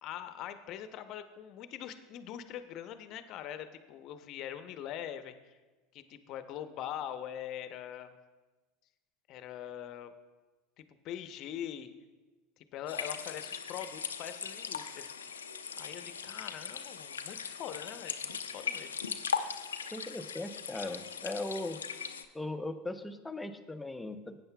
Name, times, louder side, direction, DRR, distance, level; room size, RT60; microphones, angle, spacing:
voice 1, 0.0-5.6 5.9-8.2 9.3-10.1 10.8-11.9 12.6-15.1 15.8-18.9, left 10 dB, 55° left, 10 dB, 0.8 m, -43 dB
sound 1, 12.9-22.3, left 6 dB, 90° left, 0.5 m, -39 dB
voice 2, 19.9-21.8 22.3-24.4, left 2 dB, 10° left, 7 dB, 0.8 m, -38 dB
17.5 x 9.0 x 2.3 m, 1.2 s
hypercardioid pair, 80°, 0 cm